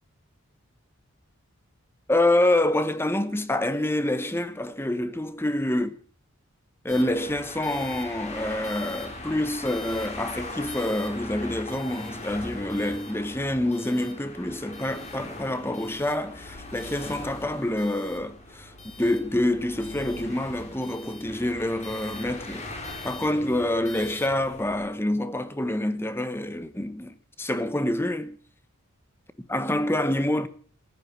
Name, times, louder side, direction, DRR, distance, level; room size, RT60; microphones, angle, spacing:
voice 1, 2.1-5.9 6.8-18.7 19.0-22.7 23.0-28.4 29.5-30.5, left 1 dB, 10° left, 0.9 m, -27 dB
sound 1, 6.9-24.8, left 2 dB, 30° left, 3.3 m, -40 dB
15.0 x 11.0 x 7.4 m
head